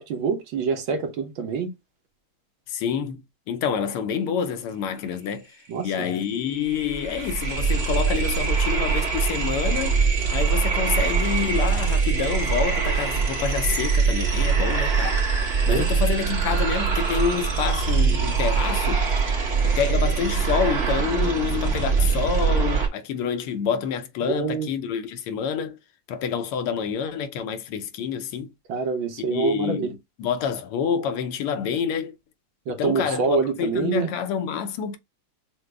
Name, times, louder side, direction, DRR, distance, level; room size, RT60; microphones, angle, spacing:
voice 1, 0.0-1.7 5.7-6.2 15.7-16.0 24.2-24.7 28.7-29.9 32.7-34.1, right 5 dB, 70° right, 1.6 m, -26 dB
voice 2, 2.7-3.2 3.5-5.5 5.8-10.0 10.3-15.3 15.7-19.1 19.6-25.8 26.1-28.5 29.3-32.1 32.7-35.0, left 7 dB, 85° left, 1.6 m, -27 dB
sound 1, 5.9-6.0 6.2-22.9, right 5 dB, 40° right, 1.3 m, -23 dB
6.3 x 2.2 x 3.3 m
omnidirectional pair, 2.4 m